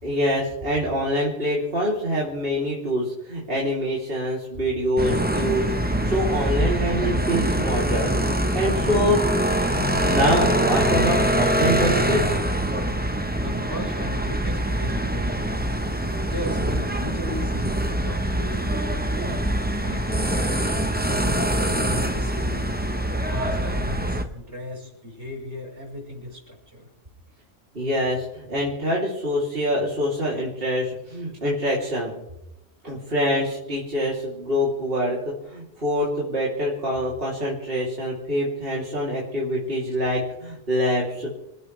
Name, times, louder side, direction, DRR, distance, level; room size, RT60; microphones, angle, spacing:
voice 1, 0.0-8.1 8.5-9.2 9.9-12.4 27.7-32.1 32.8-41.3, equal, 50° right, -6 dB, 3.7 m, -25 dB
sound 1, 5.0-24.2, right 1 dB, 10° right, 1.0 m, -24 dB
voice 2, 13.3-15.8 16.3-19.4 19.8-20.3 21.2-22.7 23.2-26.9, left 1 dB, 65° right, -1 dB, 5.3 m, -37 dB
27.5 x 15.5 x 3.4 m, 0.86 s
omnidirectional pair, 1.2 m